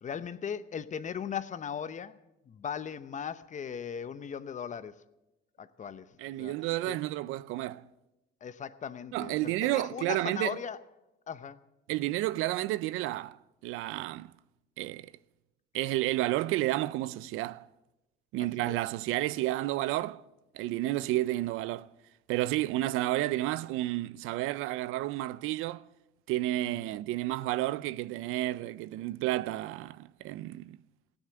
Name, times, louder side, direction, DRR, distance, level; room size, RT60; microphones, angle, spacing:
voice 1, 0.0-2.2 2.5-4.9 5.6-6.1 6.4-6.5 6.9-7.0 8.4-10.8 11.3-11.6 18.6-18.8, left 7 dB, 35° left, 0.8 m, -38 dB
voice 2, 6.2-7.9 9.1-10.6 11.9-13.4 13.6-14.3 14.8-15.1 15.7-17.7 18.3-20.2 20.5-21.9 22.3-25.8 26.3-30.8, right 16 dB, 80° right, 0.5 m, -31 dB
16.0 x 10.0 x 7.8 m
cardioid pair, 100°, 21 cm